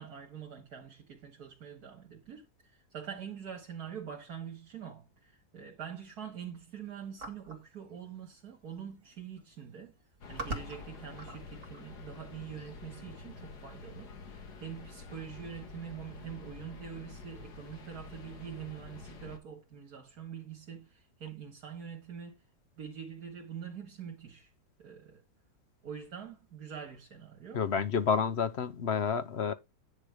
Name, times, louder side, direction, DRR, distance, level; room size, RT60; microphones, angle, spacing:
voice 1, 0.0-2.5 2.9-9.9 10.3-14.1 14.6-22.4 22.8-24.5 24.8-25.2 25.8-27.6, right 8 dB, 75° right, 2.3 m, -44 dB
sound 1, 7.2-7.6 8.7-8.8 9.1-9.4 10.0-11.8, right 2 dB, 55° right, 2.5 m, -41 dB
sound 2, 10.2-19.4, left 4 dB, 85° left, 2.2 m, -48 dB
voice 2, 27.5-29.5, left 6 dB, 50° left, 0.9 m, -29 dB
10.0 x 5.2 x 5.1 m
omnidirectional pair, 1.7 m